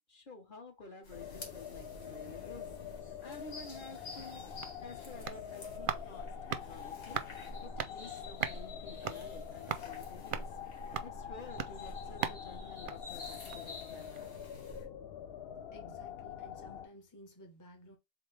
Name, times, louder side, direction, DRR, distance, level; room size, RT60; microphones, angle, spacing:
voice 1, 0.1-2.7 3.0-4.4 4.8-6.3 6.5-7.2 7.6-10.5 11.0-14.7, left 3 dB, 45° left, 1.3 m, -51 dB
sound 1, 1.0-14.9, left 1 dB, 85° left, 1.9 m, -49 dB
sound 2, 1.1-16.9, left 9 dB, 65° left, 0.8 m, -46 dB
sound 3, 4.6-13.8 14.1-14.2, right 8 dB, 60° right, 0.6 m, -42 dB
voice 2, 15.7-18.0, equal, 20° left, 0.8 m, -55 dB
3.6 x 3.6 x 3.2 m
omnidirectional pair, 1.2 m